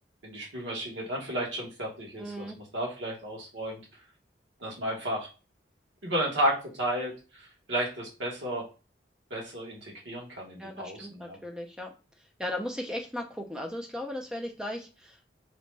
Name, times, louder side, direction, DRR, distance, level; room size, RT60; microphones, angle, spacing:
voice 1, 0.2-3.8 4.6-5.3 6.0-8.7 9.3-11.4, right 1 dB, 85° right, -2 dB, 1.1 m, -33 dB
voice 2, 2.2-2.6 10.6-11.9 12.4-15.3, left 1 dB, 5° right, 3 dB, 0.3 m, -36 dB
2.6 x 2.1 x 3.2 m, 0.33 s
head